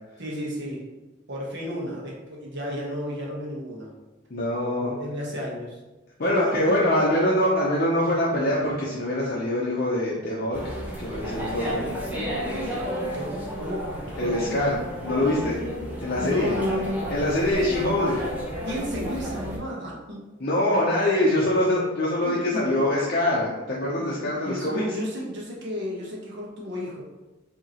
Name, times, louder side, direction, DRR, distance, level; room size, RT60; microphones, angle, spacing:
voice 1, 0.2-0.8 1.3-3.9 4.8-5.8 6.2-6.9 13.1-14.8 16.2-17.1 18.6-20.3 22.2-22.4 22.8-22.9 24.0-27.0, equal, 55° right, -3 dB, 1.1 m, -32 dB
voice 2, 4.3-4.9 6.2-10.6 11.0-11.8 14.2-15.6 16.0-16.5 17.1-18.1 20.4-24.8, left 1 dB, 45° left, -5 dB, 0.6 m, -24 dB
sound 1, 10.5-19.6, equal, 10° right, 0.7 m, -32 dB
5.0 x 2.8 x 2.9 m, 1.1 s
head